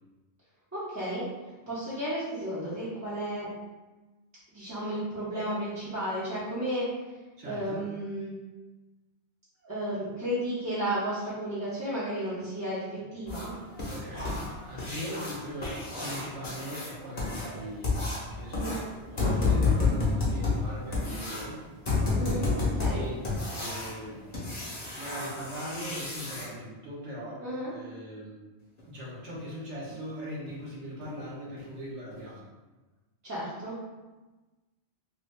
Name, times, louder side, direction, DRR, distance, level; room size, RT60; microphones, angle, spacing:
voice 1, 0.7-1.3 1.7-3.5 4.5-6.9 7.4-8.3 9.6-13.6 18.5-18.8 22.1-23.1 27.4-27.7 33.2-33.8, right 1 dB, 15° right, -11 dB, 0.7 m, -33 dB
voice 2, 7.4-7.8 13.9-18.8 19.1-21.6 22.9-23.2 23.6-24.2 25.0-27.4 27.7-28.4 28.9-32.4, equal, 80° right, -6 dB, 1.1 m, -40 dB
sound 1, 13.3-26.5 28.8-28.9 29.3-29.4 29.9-30.0 30.5-30.6 31.0-31.2 31.6-31.7 32.1-32.2, left 3 dB, 40° left, 0.9 m, -30 dB
2.8 x 2.6 x 3.2 m, 1.2 s
omnidirectional pair, 1.2 m